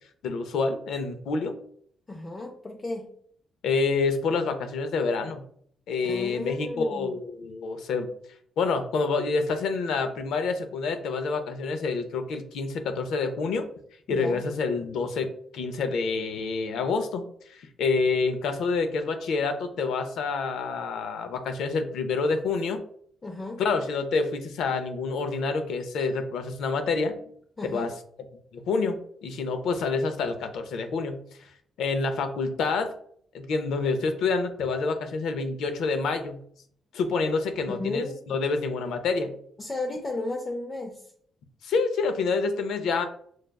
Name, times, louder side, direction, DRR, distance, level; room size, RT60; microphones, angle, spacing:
voice 1, 0.2-1.5 3.6-5.4 5.9-8.1 8.6-13.7 14.1-15.3 15.5-22.8 23.6-27.1 27.7-27.9 28.5-31.2 31.8-32.9 33.3-36.4 36.9-39.3 41.6-43.1, left 4 dB, 80° left, 8 dB, 0.5 m, -27 dB
voice 2, 2.1-3.1 6.0-7.1 14.1-14.5 23.2-23.6 27.6-27.9 37.7-38.2 39.6-41.1, left 2 dB, 20° left, 1 dB, 0.4 m, -34 dB
6.2 x 2.2 x 2.2 m, 0.63 s
cardioid pair, 150°, 0 cm